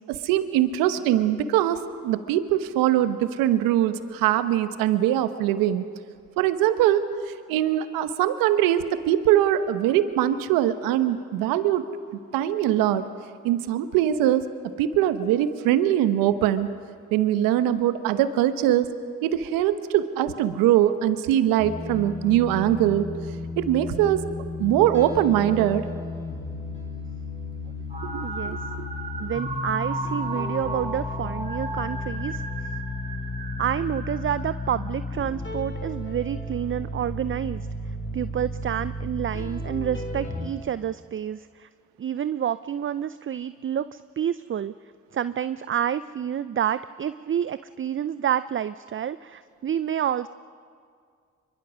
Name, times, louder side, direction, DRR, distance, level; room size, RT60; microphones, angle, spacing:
voice 1, 0.1-5.8 6.4-7.1 7.5-11.8 12.3-13.1 13.4-14.5 14.8-16.7 17.1-18.9 19.2-23.1 23.6-24.2 24.6-25.8 28.0-28.9, right 12 dB, 85° right, 12 dB, 1.0 m, -22 dB
sound 1, 21.6-40.5, left 2 dB, 35° left, 5.1 m, -33 dB
sound 2, 27.9-35.2, right 3 dB, 20° right, 4.7 m, -35 dB
voice 2, 28.2-28.6 29.2-32.4 33.6-37.7 38.1-41.7 42.0-44.7 45.1-50.3, right 9 dB, 35° right, 15 dB, 0.5 m, -28 dB
24.0 x 23.0 x 6.2 m, 2.2 s
hypercardioid pair, 45°, 33 cm